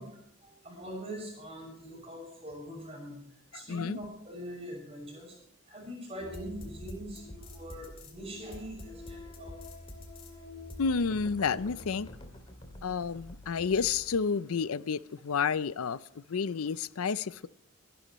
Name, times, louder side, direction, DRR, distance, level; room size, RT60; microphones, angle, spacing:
voice 1, 0.0-5.4 5.7-9.5, equal, 25° right, 6.3 m, -43 dB
voice 2, 3.5-4.0 10.8-12.1 12.8-16.0 16.3-17.5, left 5 dB, 80° left, 0.5 m, -30 dB
sound 1, 6.2-14.2, left 1 dB, 25° left, 2.4 m, -46 dB
23.0 x 12.0 x 3.1 m
head